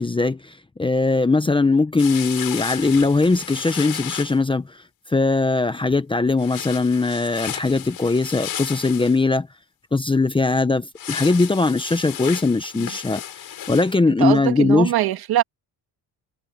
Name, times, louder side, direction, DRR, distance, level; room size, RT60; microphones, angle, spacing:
voice 1, 0.0-4.8 5.1-9.5 9.9-13.2 13.7-14.9, left 3 dB, 10° left, 0.9 m, -20 dB
sound 1, 2.0-4.4 6.4-9.2 11.0-13.9, left 10 dB, 55° left, 7.4 m, -33 dB
voice 2, 14.1-15.4, right 13 dB, 60° right, 2.2 m, -22 dB
cardioid pair, 140°, 43 cm